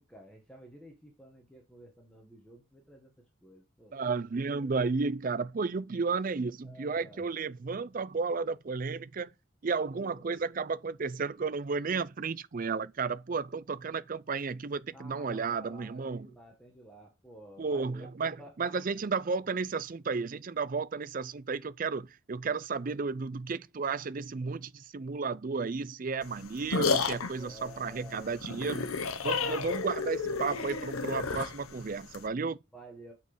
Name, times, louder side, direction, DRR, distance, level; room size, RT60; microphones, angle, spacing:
voice 1, 0.0-3.1 3.4-4.1 4.5-4.7 6.6-7.3 7.8-7.9 9.9-10.5 14.9-18.8 27.3-28.7 29.8-30.1 32.7-33.1, right 1 dB, 5° left, 1.3 m, -52 dB
voice 2, 3.9-9.3 9.6-16.3 17.6-28.9 29.2-32.6, right 4 dB, 40° right, 0.4 m, -33 dB
sound 1, 26.2-32.3, left 4 dB, 90° left, 1.0 m, -32 dB
8.3 x 4.5 x 5.0 m
head